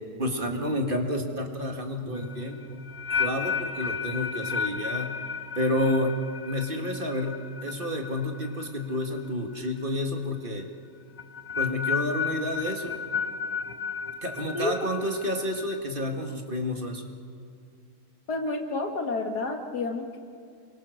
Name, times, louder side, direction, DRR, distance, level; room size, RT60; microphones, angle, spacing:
voice 1, 0.2-2.9 3.2-5.2 5.6-6.2 6.5-10.7 11.6-13.0 14.2-17.0, left 1 dB, 35° right, 4 dB, 2.1 m, -30 dB
sound 1, 2.1-9.3 9.5-9.9 11.2-15.8, left 6 dB, 30° left, 0.9 m, -33 dB
Marimba xylophone, 3.1-4.5, right 1 dB, 85° right, 5.8 m, -48 dB
voice 2, 14.5-14.9 18.3-20.2, left 3 dB, 90° left, 4 dB, 2.6 m, -30 dB
28.5 x 23.5 x 6.5 m, 2.3 s
omnidirectional pair, 1.7 m